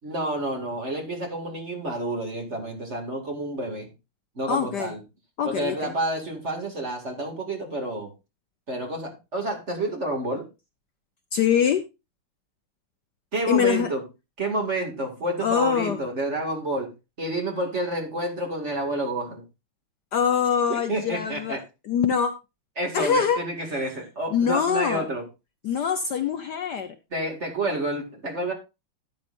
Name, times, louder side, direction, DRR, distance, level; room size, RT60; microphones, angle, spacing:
voice 1, 0.0-3.9 4.4-5.0 5.4-8.1 8.7-10.5 13.3-14.0 14.4-19.4 20.7-21.6 22.8-25.2 27.1-28.5, right 1 dB, 35° right, 2 dB, 2.5 m, -29 dB
voice 2, 4.5-4.9 5.4-5.9 11.3-11.8 13.5-13.9 15.4-16.0 20.1-21.6 21.8-22.3 22.9-23.4 23.7-23.9 24.3-25.0 25.6-26.9, left 7 dB, 65° left, 8 dB, 1.2 m, -24 dB
13.0 x 8.9 x 2.6 m, 0.26 s
omnidirectional pair, 2.3 m